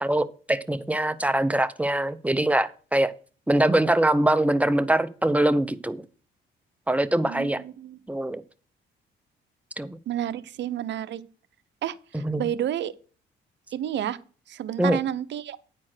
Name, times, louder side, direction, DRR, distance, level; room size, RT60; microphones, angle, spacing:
voice 1, 0.0-3.1 3.5-6.0 6.9-7.6 8.1-8.4 9.8-10.0 12.1-12.4 14.8-15.0, right 1 dB, 5° right, 12 dB, 0.6 m, -23 dB
voice 2, 7.2-8.0 10.1-11.2 11.8-12.9 13.7-14.2 14.5-15.6, right 11 dB, 65° right, 13 dB, 0.7 m, -30 dB
9.8 x 4.4 x 6.2 m, 0.40 s
cardioid pair, 90°, 20 cm